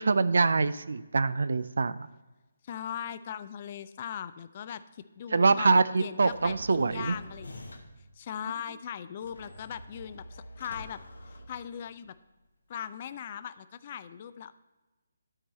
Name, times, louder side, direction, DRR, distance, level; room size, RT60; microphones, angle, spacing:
voice 1, 0.0-2.1 5.3-7.2, right 4 dB, 65° right, 15 dB, 0.3 m, -24 dB
voice 2, 2.6-7.8 8.2-11.0 11.5-12.1 12.7-14.5, left 9 dB, 35° left, 15 dB, 0.4 m, -39 dB
sound 1, 6.3-8.1 9.2-12.1, left 1 dB, 70° left, 1.0 m, -47 dB
12.5 x 4.6 x 4.1 m, 1.1 s
figure-of-eight pair, 145°, 0 cm